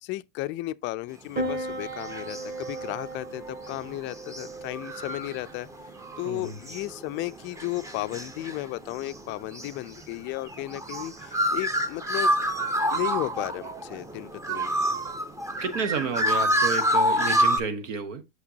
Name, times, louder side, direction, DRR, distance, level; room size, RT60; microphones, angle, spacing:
voice 1, 0.0-5.7 6.2-12.3 12.9-14.9, left 18 dB, 30° left, 0.4 m, -34 dB
Piano, 1.3-16.3, right 2 dB, 25° right, 1.4 m, -41 dB
sound 1, 1.6-3.0 3.4-17.6, equal, 10° right, 0.6 m, -28 dB
voice 2, 6.2-6.6 15.6-18.2, right 5 dB, 70° right, 1.0 m, -31 dB
6.0 x 5.7 x 2.7 m
hypercardioid pair, 95°, 38 cm